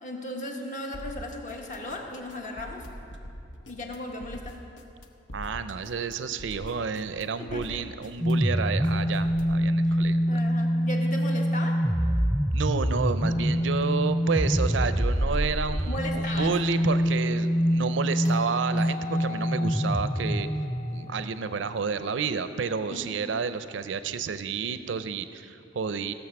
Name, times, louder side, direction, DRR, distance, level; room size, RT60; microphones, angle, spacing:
voice 1, 0.0-2.9 3.7-4.6 7.4-7.8 9.8-10.0 10.3-11.8 15.7-16.6 22.9-23.2, left 1 dB, 45° left, 1 dB, 1.4 m, -36 dB
sound 1, 0.9-9.7, equal, 90° left, 0.9 m, -44 dB
voice 2, 5.3-10.2 12.5-20.5 20.9-26.1, right 5 dB, 90° right, 12 dB, 0.5 m, -30 dB
sound 2, 8.2-21.0, equal, ahead, 0.3 m, -25 dB
sound 3, 18.2-22.5 24.8-24.9, left 6 dB, 20° left, 1.7 m, -44 dB
16.5 x 7.1 x 5.9 m, 2.8 s
head